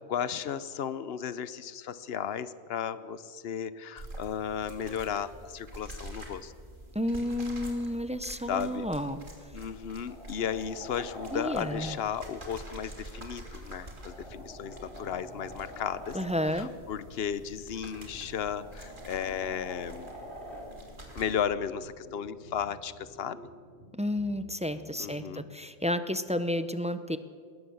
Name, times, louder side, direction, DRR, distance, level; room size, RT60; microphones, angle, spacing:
voice 1, 0.1-6.5 8.5-8.9 9.5-16.2 16.4-20.1 21.1-23.4 25.0-25.5, left 8 dB, 65° left, 15 dB, 1.0 m, -34 dB
sound 1, 4.0-21.3, right 1 dB, 50° right, 2.9 m, -47 dB
voice 2, 6.9-9.2 11.3-11.9 16.1-16.7 23.9-27.2, left 1 dB, 5° right, 11 dB, 0.6 m, -31 dB
sound 2, 9.2-9.3 9.7-12.0 13.6-16.4 17.9-20.7 23.0-23.1, equal, 80° left, 6.3 m, -46 dB
sound 3, 14.2-26.1, right 1 dB, 80° right, 5.6 m, -53 dB
20.5 x 18.0 x 7.1 m, 2.1 s
omnidirectional pair, 1.1 m